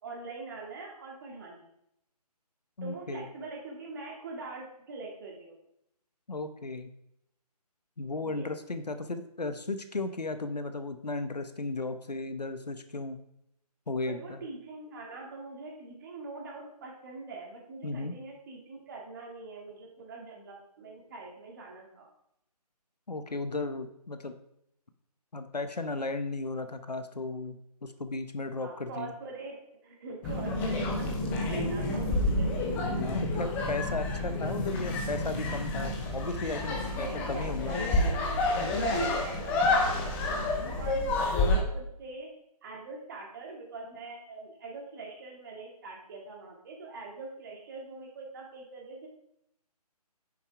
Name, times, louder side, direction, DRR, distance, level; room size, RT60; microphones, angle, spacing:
voice 1, 0.0-1.7 2.8-5.6 8.2-8.5 14.1-22.1 28.6-29.6 29.8-32.5 37.0-37.9 38.9-40.3 40.6-42.3 42.6-49.1, right 3 dB, 30° right, 0 dB, 2.1 m, -43 dB
voice 2, 2.8-3.2 6.3-6.9 8.0-13.2 13.9-14.4 17.8-18.2 23.1-24.3 25.3-29.1 32.8-37.7, left 3 dB, 80° left, 9 dB, 1.1 m, -35 dB
sound 1, 30.2-41.6, left 2 dB, 10° left, 0.6 m, -29 dB
10.0 x 6.7 x 3.5 m, 0.77 s
figure-of-eight pair, 150°, 21 cm